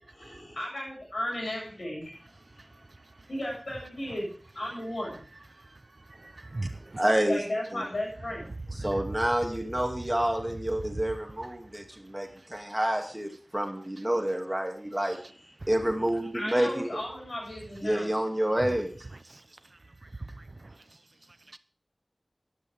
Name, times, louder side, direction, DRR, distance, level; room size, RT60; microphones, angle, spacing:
voice 1, 0.1-2.2 3.3-5.2 7.3-8.4 16.3-18.1, left 1 dB, 85° left, 7.8 m, -35 dB
voice 2, 6.1-7.0 8.8-9.0 15.6-15.7 18.6-18.8 19.3-19.4 20.0-20.8 21.5-21.6, right 2 dB, 65° right, 0.8 m, -39 dB
voice 3, 7.0-7.4 7.7-7.8 8.8-15.2 15.7-16.9 17.8-18.9, right 1 dB, 15° right, 2.3 m, -28 dB
14.0 x 11.5 x 3.5 m
wide cardioid pair, 55°, 0 cm